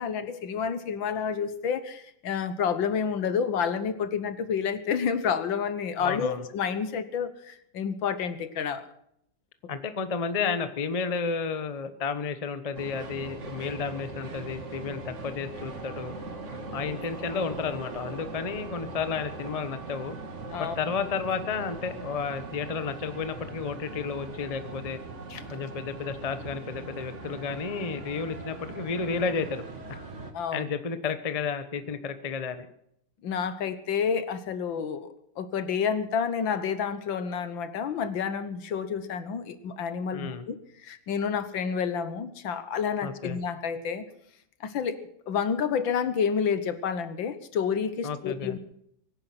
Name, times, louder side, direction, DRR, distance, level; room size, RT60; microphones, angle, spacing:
voice 1, 0.0-8.9 20.5-20.8 25.3-25.4 30.3-30.7 33.2-35.1 35.4-44.1 44.6-45.0 45.3-48.6, left 6 dB, 70° left, 12 dB, 1.9 m, -29 dB
voice 2, 6.0-6.4 9.7-16.1 16.7-20.2 20.6-25.0 25.5-30.0 30.5-32.7 40.1-40.4 43.0-43.4 48.0-48.6, left 5 dB, 25° left, 10 dB, 0.8 m, -32 dB
sound 1, 12.7-30.3, right 3 dB, 40° right, 1.9 m, -40 dB
23.5 x 10.0 x 5.9 m, 0.73 s
omnidirectional pair, 2.2 m